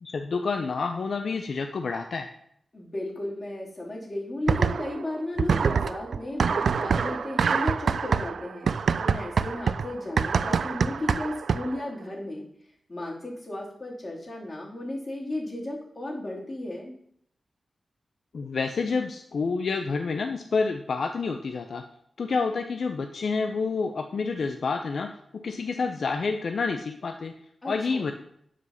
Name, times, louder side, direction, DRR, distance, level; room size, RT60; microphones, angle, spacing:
voice 1, 0.0-2.3 18.3-21.8 22.2-27.3 27.6-28.1, left 4 dB, 75° left, 5 dB, 0.6 m, -28 dB
voice 2, 2.7-12.4 12.9-16.9 27.6-28.1, left 1 dB, 35° left, -3 dB, 2.8 m, -34 dB
sound 1, 4.5-5.1 5.4-11.8, right 6 dB, 85° right, 0.3 m, -25 dB
8.0 x 5.0 x 5.7 m, 0.69 s
wide cardioid pair, 80°, 0 cm